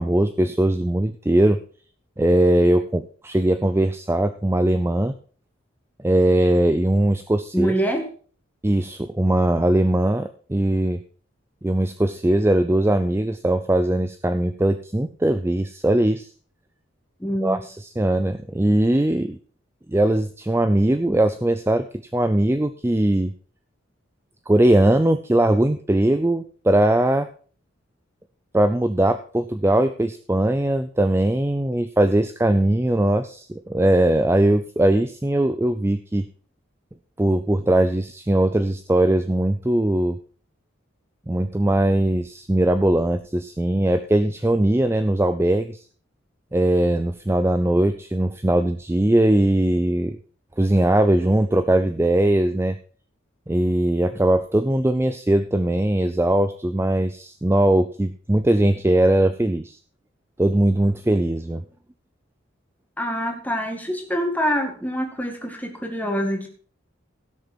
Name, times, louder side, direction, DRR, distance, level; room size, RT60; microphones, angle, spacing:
voice 1, 0.0-1.6 2.2-5.2 6.0-7.7 8.6-11.0 11.6-16.3 17.4-19.4 19.9-21.9 22.1-23.3 24.5-27.3 28.5-36.2 37.2-40.2 41.3-45.8 46.5-50.2 50.6-52.8 53.5-59.8 60.4-61.6, right 1 dB, 10° right, 10 dB, 0.4 m, -20 dB
voice 2, 7.5-8.1 17.2-17.6 63.0-66.5, equal, 10° left, 3 dB, 2.1 m, -25 dB
16.5 x 6.7 x 4.5 m, 0.42 s
head